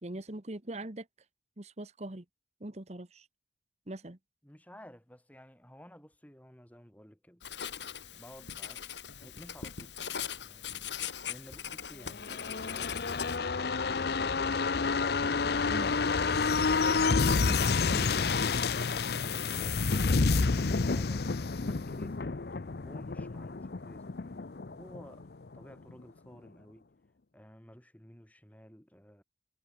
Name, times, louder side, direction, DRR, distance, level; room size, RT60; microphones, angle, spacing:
voice 1, 0.0-1.1 1.6-2.2 2.6-3.3 3.9-4.2 15.7-15.9 17.4-17.6 17.9-18.1, right 1 dB, 40° right, 1.4 m, -41 dB
voice 2, 4.4-7.4 8.1-8.8 9.2-9.9 10.4-11.0 11.3-14.1 18.9-22.3 22.8-24.2 24.7-25.3 25.5-26.9 27.3-29.2, equal, 10° left, 5.0 m, -53 dB
Writing, 7.4-13.4, left 8 dB, 85° left, 2.2 m, -40 dB
sound 1, 12.1-25.6 25.9-26.0, left 4 dB, 60° left, 0.7 m, -29 dB
head